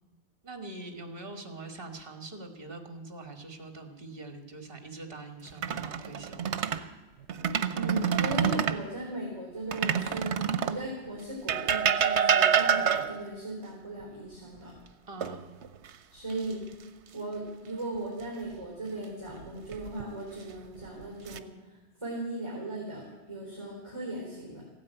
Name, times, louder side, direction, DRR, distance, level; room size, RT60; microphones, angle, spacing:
voice 1, 0.4-6.7 15.1-15.5, right 2 dB, 55° right, 6 dB, 2.0 m, -43 dB
sound 1, 5.5-6.8 7.3-8.8 9.7-10.8 11.5-13.3 15.2-15.9 16.3-16.5 19.4-20.0 20.8-21.4, right 7 dB, 85° right, 1.1 m, -27 dB
voice 2, 7.7-10.4 10.6-14.7 16.1-16.6 17.1-21.5 22.0-24.6, right 1 dB, 25° right, -4 dB, 4.0 m, -37 dB
15.5 x 9.3 x 9.0 m, 1.2 s
omnidirectional pair, 1.1 m